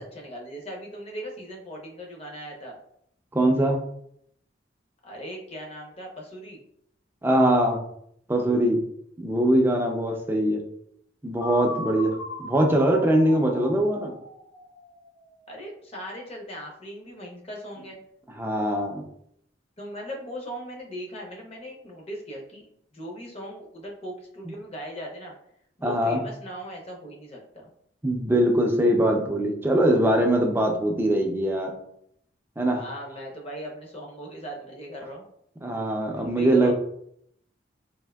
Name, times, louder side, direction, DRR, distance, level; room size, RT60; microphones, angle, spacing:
voice 1, 0.0-2.8 5.0-6.6 15.5-18.0 19.8-22.6 22.9-25.3 25.8-27.7 32.8-35.3 35.9-36.7, equal, 35° left, 0 dB, 0.6 m, -39 dB
voice 2, 3.3-3.8 7.2-7.8 8.3-8.8 9.2-10.6 11.2-14.2 18.4-19.0 25.8-26.2 28.0-31.7 32.6-32.8 35.6-36.7, right 1 dB, 10° right, 1 dB, 0.4 m, -22 dB
sound 1, 11.4-15.3, left 2 dB, 85° left, 0.8 m, -38 dB
3.4 x 2.6 x 2.2 m, 0.71 s
head